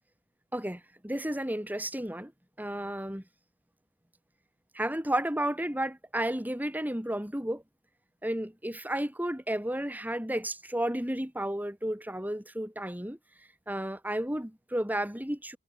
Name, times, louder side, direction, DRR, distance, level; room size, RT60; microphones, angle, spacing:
voice 1, 0.5-2.3 2.6-3.2 4.8-7.6 8.2-13.2 13.7-15.6, right 1 dB, 10° right, 3.4 m, -32 dB
head